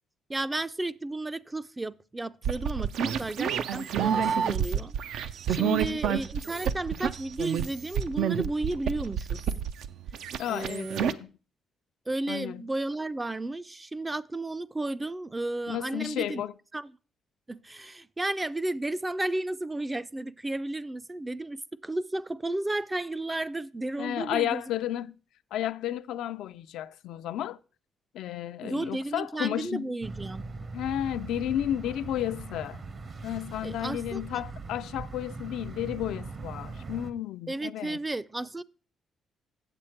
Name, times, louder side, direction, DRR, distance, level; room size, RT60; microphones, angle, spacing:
voice 1, 0.3-4.9 5.5-9.4 10.5-11.1 12.1-16.4 16.7-16.9 17.5-24.6 28.6-30.4 33.6-34.2 37.5-38.6, right 2 dB, 15° right, 0.3 m, -33 dB
sound 1, 2.4-11.1, right 8 dB, 80° right, 0.4 m, -29 dB
voice 2, 5.6-6.0 10.4-11.3 12.3-12.6 15.7-16.5 24.0-25.1 25.5-27.6 28.1-29.9 30.7-32.8 33.2-38.0, left 11 dB, 85° left, 0.3 m, -32 dB
sound 2, 30.0-37.1, right 3 dB, 45° right, 0.9 m, -40 dB
7.7 x 7.7 x 4.4 m
cardioid pair, 90°, 0 cm